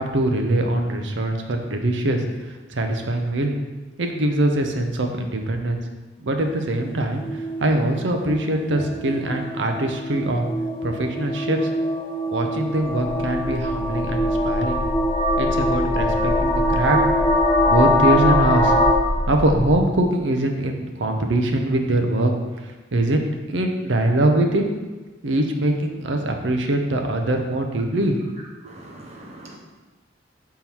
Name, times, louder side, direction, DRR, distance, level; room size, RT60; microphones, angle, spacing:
voice 1, 0.0-3.6 4.0-5.8 6.2-10.4 10.8-11.6 12.3-14.8 15.4-17.0 17.7-18.8 19.3-22.3 22.6-23.2 23.5-24.6 25.2-28.2 28.6-28.7, right 1 dB, 75° right, 4 dB, 0.7 m, -22 dB
sound 1, 6.9-18.9, left 1 dB, 30° left, 0.7 m, -23 dB
sound 2, 13.0-19.7, left 1 dB, 65° left, 0.9 m, -28 dB
voice 2, 28.6-29.6, right 1 dB, 35° right, -1 dB, 1.0 m, -42 dB
7.0 x 3.7 x 4.5 m, 1.2 s
head